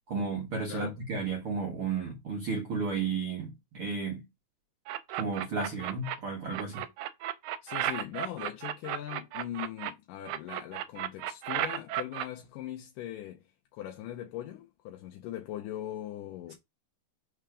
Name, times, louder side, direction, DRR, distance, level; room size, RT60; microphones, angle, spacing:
voice 1, 0.1-4.2 5.1-6.9, right 4 dB, 60° right, 1.5 m, -33 dB
sound 1, 4.9-6.2 6.5-9.9 10.3-12.3, right 12 dB, 85° right, 2.4 m, -34 dB
voice 2, 7.6-13.4 13.7-16.5, left 12 dB, 75° left, 2.2 m, -40 dB
5.7 x 3.6 x 4.9 m
omnidirectional pair, 4.2 m